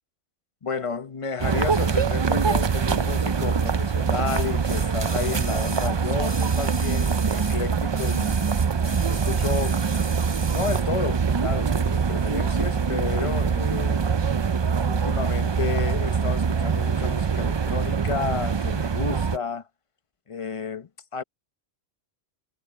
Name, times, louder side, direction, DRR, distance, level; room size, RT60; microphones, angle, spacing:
voice 1, 0.6-8.6 9.1-9.8 10.4-14.1 14.9-19.6 20.3-21.2, left 5 dB, 30° left, 1.0 m, -32 dB
sound 1, 1.4-19.4, right 6 dB, 40° right, 0.4 m, -24 dB
sound 2, 2.7-2.8 4.3-7.6 7.9-10.9 11.8-11.9, right 3 dB, 25° right, 1.0 m, -38 dB
omnidirectional pair, 1.1 m